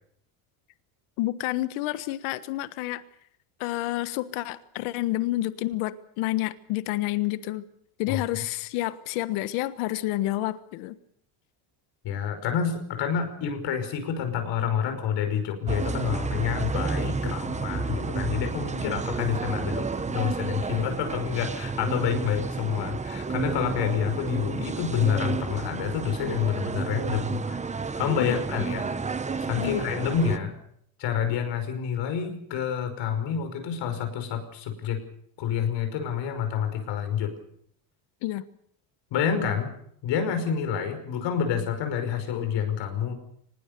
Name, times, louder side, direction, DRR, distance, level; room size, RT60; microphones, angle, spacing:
voice 1, 1.2-3.0 3.6-7.7 8.0-10.9 18.7-18.9 28.2-28.4 29.6-29.8 38.2-38.4, left 16 dB, 80° left, 1.5 m, -29 dB
voice 2, 12.0-28.9 29.4-30.5 31.0-35.0 35.4-37.3 39.1-39.7 40.0-43.1, left 8 dB, 65° left, 5.6 m, -28 dB
sound 1, 15.7-30.4, right 4 dB, 15° right, 1.0 m, -31 dB
24.5 x 20.5 x 6.9 m
cardioid pair, 125°, 47 cm